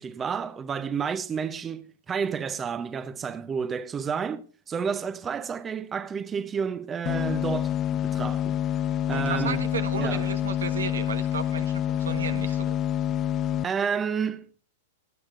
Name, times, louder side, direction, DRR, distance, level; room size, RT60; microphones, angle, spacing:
voice 1, 0.0-8.6 9.1-9.6 10.0-10.3 13.6-14.5, right 6 dB, 20° right, 0.7 m, -30 dB
sound 1, 7.1-13.6, left 11 dB, 30° left, 0.5 m, -27 dB
voice 2, 9.1-12.8, right 6 dB, 85° right, 1.2 m, -34 dB
17.0 x 10.5 x 2.5 m
hypercardioid pair, 120°, 0 cm